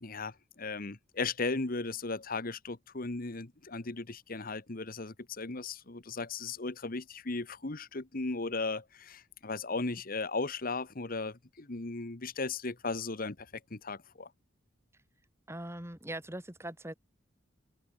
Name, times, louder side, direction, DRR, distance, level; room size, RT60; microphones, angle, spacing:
voice 1, 0.0-14.3, left 3 dB, 50° left, 1.4 m, -36 dB
voice 2, 15.5-16.9, right 1 dB, 15° right, 5.4 m, -41 dB
head